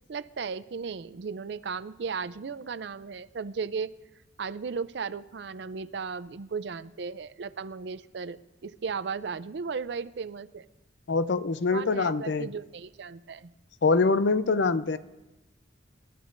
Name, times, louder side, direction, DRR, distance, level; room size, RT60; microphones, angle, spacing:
voice 1, 0.1-3.9 4.4-8.4 8.6-10.6 11.7-13.5, right 5 dB, 65° right, 15 dB, 0.5 m, -35 dB
voice 2, 11.1-12.5 13.8-15.0, left 4 dB, 75° left, 13 dB, 0.6 m, -24 dB
28.5 x 13.5 x 2.6 m, 1.0 s
head